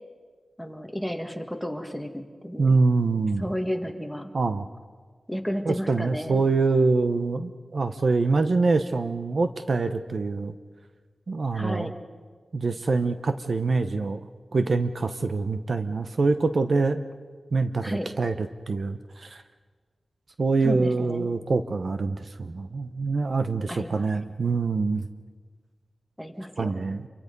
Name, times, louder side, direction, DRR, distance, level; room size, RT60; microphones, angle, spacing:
voice 1, 0.6-2.7 3.4-4.3 5.3-6.4 11.5-12.0 17.8-18.1 20.6-21.3 23.7-24.0 26.2-26.8, equal, ahead, 5 dB, 1.7 m, -32 dB
voice 2, 2.6-3.5 4.3-4.7 5.7-10.5 11.3-11.9 12.5-14.2 14.5-17.0 17.5-19.4 20.4-25.1 26.6-27.1, right 3 dB, 55° right, 9 dB, 0.9 m, -25 dB
28.0 x 24.0 x 5.4 m, 1.5 s
wide cardioid pair, 115°, 0 cm